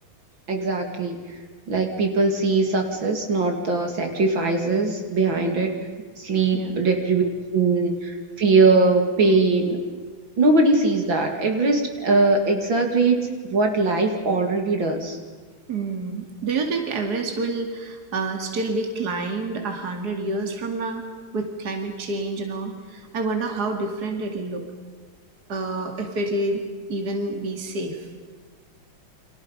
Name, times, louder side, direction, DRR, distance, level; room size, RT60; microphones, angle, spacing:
voice 1, 0.5-1.2 1.7-5.7 6.2-9.8 10.4-15.2, right 3 dB, 65° right, 4 dB, 3.2 m, -21 dB
voice 2, 15.7-21.0 21.3-24.7 25.5-26.6 26.9-28.0, right 3 dB, 50° right, 4 dB, 2.8 m, -28 dB
29.5 x 25.5 x 5.4 m, 1.5 s
omnidirectional pair, 2.3 m